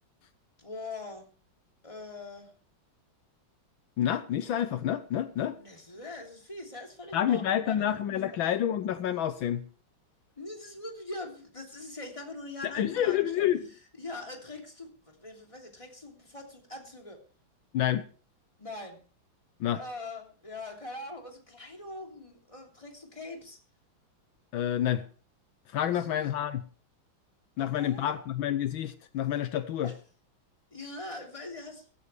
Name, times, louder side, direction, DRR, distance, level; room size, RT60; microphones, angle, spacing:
voice 1, 0.6-1.3 1.8-2.5 5.6-7.9 8.3-8.4 10.4-13.5 14.0-17.2 18.6-19.0 19.8-23.6 25.9-26.3 27.6-28.2 29.8-30.0 30.7-31.9, left 2 dB, 15° left, 2 dB, 3.0 m, -42 dB
voice 2, 4.0-5.6 7.1-9.6 12.6-13.6 17.7-18.0 19.6-19.8 24.5-25.0 25.7-26.6 27.6-29.9, left 10 dB, 75° left, 11 dB, 1.6 m, -28 dB
16.5 x 15.0 x 3.3 m, 0.38 s
omnidirectional pair, 2.2 m